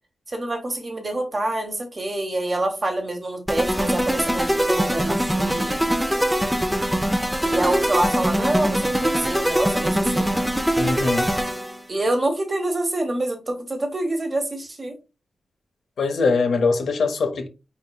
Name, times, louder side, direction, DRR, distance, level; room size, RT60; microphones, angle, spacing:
voice 1, 0.3-5.8 7.4-10.3 11.9-14.9, right 1 dB, 35° right, 1.1 m, -26 dB
sound 1, 3.5-11.8, equal, 5° right, 0.5 m, -22 dB
voice 2, 10.8-11.3 16.0-17.5, left 4 dB, 80° left, 0.9 m, -22 dB
4.6 x 3.6 x 2.2 m
wide cardioid pair, 110°, 0 cm